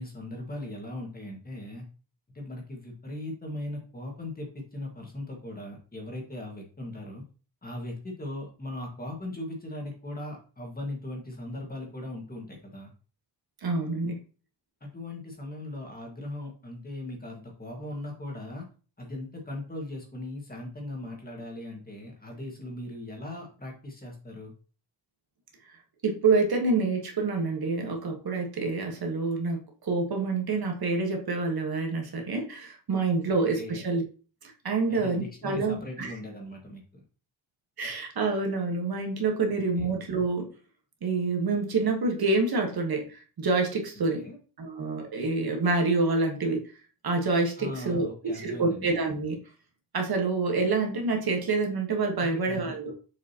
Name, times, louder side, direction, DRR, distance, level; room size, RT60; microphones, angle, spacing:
voice 1, 0.0-1.8 2.3-7.2 7.6-12.9 14.8-18.7 19.0-24.5 33.5-33.8 34.9-37.0 39.5-39.9 44.2-44.4 47.6-48.9 52.2-52.9, left 1 dB, 20° left, 0 dB, 1.7 m, -39 dB
voice 2, 13.6-14.2 26.0-34.0 34.4-36.1 37.8-40.5 41.0-44.2 44.6-46.6 47.0-49.4 49.9-52.9, right 3 dB, 55° right, 2 dB, 1.4 m, -27 dB
6.7 x 5.1 x 2.9 m, 0.37 s
wide cardioid pair, 160°, 43 cm